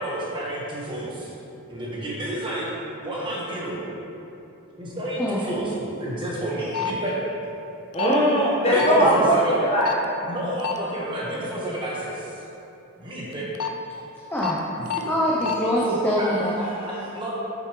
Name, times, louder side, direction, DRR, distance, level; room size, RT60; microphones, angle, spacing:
voice 1, 0.0-1.3 1.7-2.7 3.0-3.9 4.8-7.1 8.6-9.6 10.2-12.4 13.0-13.5 14.9-15.1 15.8-17.3, right 1 dB, 20° right, -6 dB, 1.4 m, -30 dB
sound 1, 6.7-6.9 7.9-8.1 8.8-9.0 9.8-10.0 10.6-10.8 13.3-13.7 14.4-14.5 14.9-15.0 15.4-15.5, left 10 dB, 85° left, 0.5 m, -27 dB
voice 2, 7.9-9.9, equal, 25° left, -6 dB, 1.3 m, -19 dB
voice 3, 14.2-14.6 15.1-16.5, equal, 10° left, -6 dB, 0.6 m, -24 dB
8.2 x 6.8 x 3.2 m, 2.8 s
head